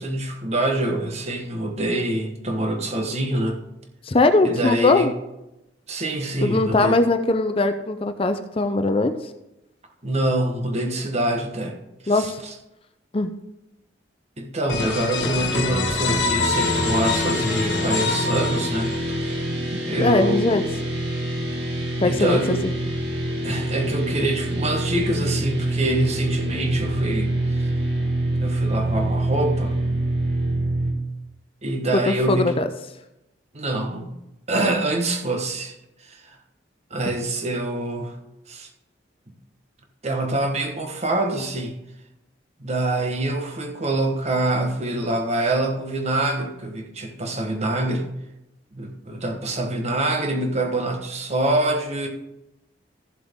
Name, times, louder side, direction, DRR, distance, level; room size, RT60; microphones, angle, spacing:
voice 1, 0.0-3.6 4.4-5.1 5.9-7.0 10.0-11.8 12.0-12.5 14.4-19.3 19.7-20.5 22.0-22.7 23.4-27.8 28.4-29.8 31.6-32.5 33.5-34.2 34.5-35.7 36.0-36.4 36.9-38.2 38.5-38.7 40.0-41.8 42.6-48.1 48.7-52.1, right 1 dB, 35° right, 3 dB, 1.3 m, -25 dB
voice 2, 4.0-5.1 6.4-9.1 12.1-12.4 13.1-13.3 20.0-20.6 22.0-22.6 31.9-32.7, left 2 dB, 30° left, 9 dB, 0.5 m, -20 dB
sound 1, 14.7-19.3, left 3 dB, 75° left, 1.5 m, -25 dB
sound 2, 16.5-30.9, right 1 dB, 65° right, 2.4 m, -25 dB
14.5 x 7.5 x 3.6 m, 0.91 s
head